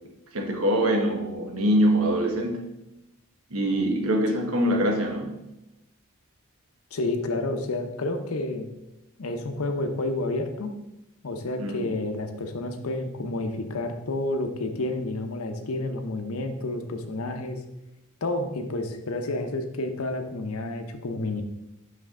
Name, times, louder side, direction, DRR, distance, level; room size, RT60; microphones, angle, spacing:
voice 1, 0.3-2.7 3.5-5.4 11.6-11.8, equal, 70° right, 3 dB, 1.2 m, -24 dB
voice 2, 6.9-8.7 9.2-10.8 11.2-17.6 18.2-21.4, left 2 dB, 75° left, 7 dB, 0.8 m, -30 dB
6.2 x 5.5 x 3.7 m, 0.92 s
head